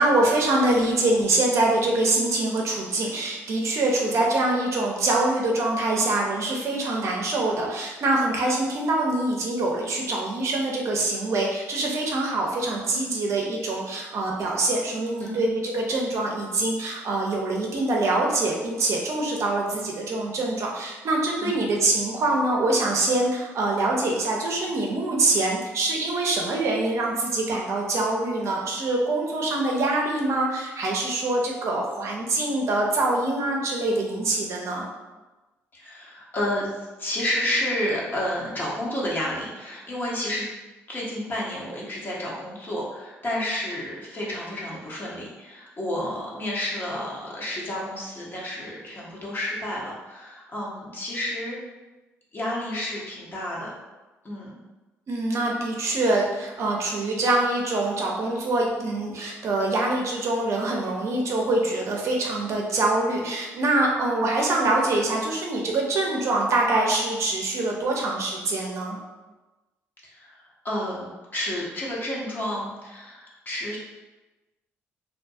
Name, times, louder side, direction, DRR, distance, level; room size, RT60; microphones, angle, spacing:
voice 1, 0.0-34.9 55.1-69.0, right 2 dB, 55° right, -1 dB, 0.6 m, -24 dB
voice 2, 35.7-40.5 40.9-51.6 52.3-53.7 54.2-54.6 70.0-73.8, left 1 dB, 35° left, -5 dB, 1.0 m, -30 dB
2.6 x 2.2 x 2.6 m, 1.1 s
supercardioid pair, 60°, 6 cm